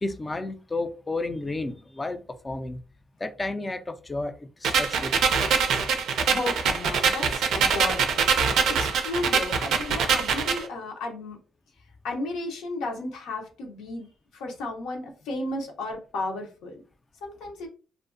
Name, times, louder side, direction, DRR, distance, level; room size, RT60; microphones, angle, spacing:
voice 1, 0.0-2.8 3.2-5.4, left 2 dB, 25° left, 0.3 m, -32 dB
sound 1, 4.6-10.6, right 6 dB, 75° right, 0.4 m, -24 dB
voice 2, 6.3-11.4 12.0-16.8 17.2-17.7, left 2 dB, 85° left, 0.7 m, -34 dB
2.5 x 2.1 x 2.4 m
cardioid pair, 90°, 0 cm